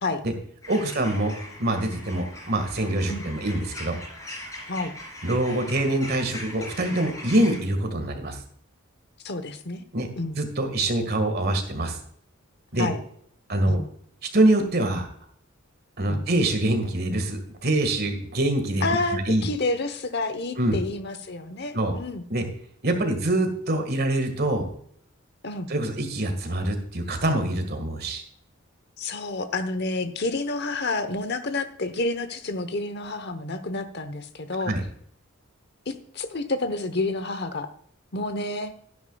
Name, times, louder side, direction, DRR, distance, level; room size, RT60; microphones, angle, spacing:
sound 1, 0.6-7.6, left 1 dB, 15° left, 3.4 m, -40 dB
voice 1, 0.7-4.0 5.2-8.4 9.9-10.1 10.4-12.0 12.7-12.9 13.5-13.8 14.3-15.1 16.0-18.9 19.1-19.5 20.6-20.8 21.7-22.0 22.3-22.5 22.8-24.7 25.7-28.2 34.7-34.8, right 1 dB, 50° right, 6 dB, 1.8 m, -24 dB
voice 2, 9.2-9.8 10.2-10.4 12.8-13.0 13.6-13.8 16.1-16.2 18.8-22.3 23.0-23.2 25.4-25.7 29.0-34.7 35.9-37.7 38.1-38.7, left 2 dB, 55° left, 11 dB, 1.0 m, -29 dB
12.0 x 10.5 x 2.3 m, 0.64 s
head